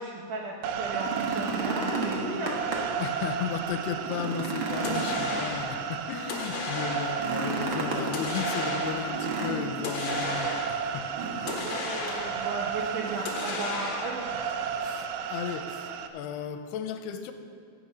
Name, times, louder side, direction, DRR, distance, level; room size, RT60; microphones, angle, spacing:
voice 1, 0.0-2.6 11.6-14.5, right 3 dB, 70° right, -1 dB, 2.1 m, -35 dB
sound 1, 0.6-16.1, right 7 dB, 90° right, 2.9 m, -33 dB
sound 2, 0.8-3.0 3.5-3.6 4.0-5.9 7.1-8.2 9.1-10.0 11.1-11.8 12.1-12.2 12.8-13.4 14.5-14.6, right 3 dB, 50° right, 1.5 m, -33 dB
voice 2, 3.0-11.1 11.4-11.7 14.8-17.3, left 7 dB, 80° left, 8 dB, 2.7 m, -35 dB
sound 3, 4.8-5.8 6.3-7.3 8.1-9.2 9.8-10.9 11.5-12.6 13.3-14.3, left 4 dB, 55° left, 2.2 m, -35 dB
16.5 x 8.4 x 6.3 m, 2.3 s
omnidirectional pair, 4.7 m